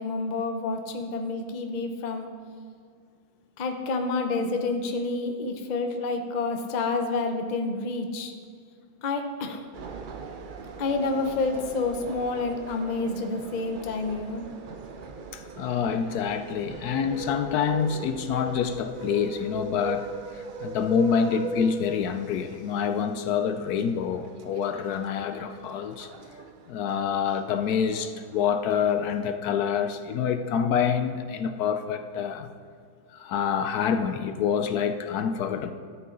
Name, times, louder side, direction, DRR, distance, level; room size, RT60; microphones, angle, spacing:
voice 1, 0.0-2.3 3.6-8.3 9.0-9.6 10.8-14.4, left 3 dB, 40° left, 5 dB, 0.7 m, -29 dB
sound 1, 9.7-29.2, right 3 dB, 70° right, 0.4 m, -40 dB
voice 2, 15.3-20.1 20.6-26.1 26.7-32.5 33.1-35.7, left 7 dB, 75° left, 9 dB, 1.1 m, -27 dB
12.5 x 8.4 x 3.9 m, 2.2 s
omnidirectional pair, 1.7 m